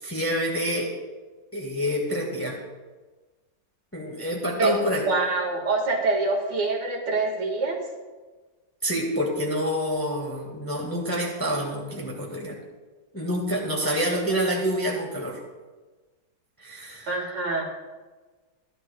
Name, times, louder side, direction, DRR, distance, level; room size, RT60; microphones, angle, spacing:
voice 1, 0.0-0.9 1.5-2.6 3.9-5.0 8.8-12.6 13.1-15.4 16.6-17.1, equal, 10° left, -1 dB, 1.4 m, -27 dB
voice 2, 5.0-7.8 17.1-17.6, right 3 dB, 70° right, -2 dB, 2.6 m, -25 dB
15.5 x 11.0 x 2.3 m, 1.3 s
omnidirectional pair, 2.0 m